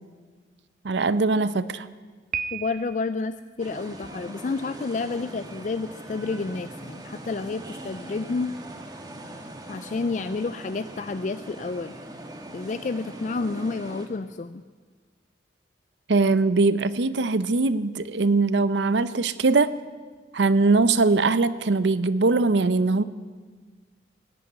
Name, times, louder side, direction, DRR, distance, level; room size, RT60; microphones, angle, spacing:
voice 1, 0.8-1.9 16.1-19.7 20.3-23.0, right 3 dB, 80° right, 15 dB, 0.6 m, -21 dB
Piano, 2.3-3.3, right 7 dB, 45° right, 0.7 m, -33 dB
voice 2, 2.5-8.5 9.7-11.9 12.5-14.6, left 3 dB, 45° left, 12 dB, 0.4 m, -30 dB
sound 1, 3.6-14.1, right 1 dB, 20° right, 1.5 m, -41 dB
17.0 x 8.6 x 9.9 m, 1.5 s
head